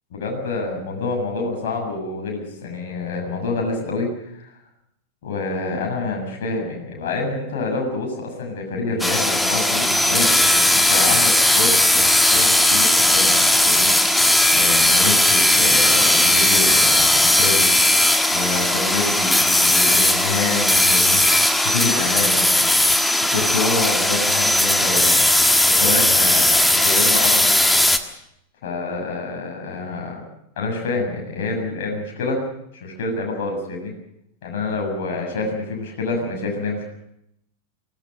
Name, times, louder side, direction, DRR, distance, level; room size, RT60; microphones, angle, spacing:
voice 1, 0.1-4.5 5.2-25.2 25.7-27.6 28.6-30.3 30.6-32.4 32.7-33.9 34.4-36.9, left 3 dB, 55° left, 0 dB, 7.3 m, -27 dB
sound 1, 9.0-28.0, left 1 dB, 5° left, 1.6 m, -17 dB
24.5 x 18.5 x 6.6 m, 0.77 s
figure-of-eight pair, 90°, 0 cm